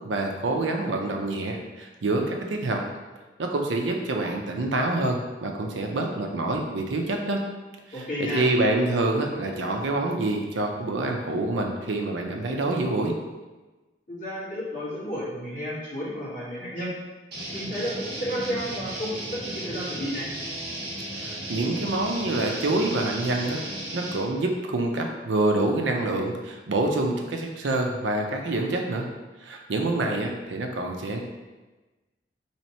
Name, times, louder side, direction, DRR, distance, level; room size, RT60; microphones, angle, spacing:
voice 1, 0.0-2.8 3.4-7.4 7.9-8.1 8.3-13.1 21.2-23.6 23.9-29.1 29.4-31.2, right 2 dB, 90° right, 2 dB, 0.6 m, -26 dB
voice 2, 7.9-8.5 14.1-16.9 17.5-20.3, equal, 45° left, -10 dB, 1.5 m, -32 dB
sound 1, 17.3-24.2, right 1 dB, 60° right, 1.1 m, -35 dB
3.1 x 2.9 x 4.3 m, 1.2 s
head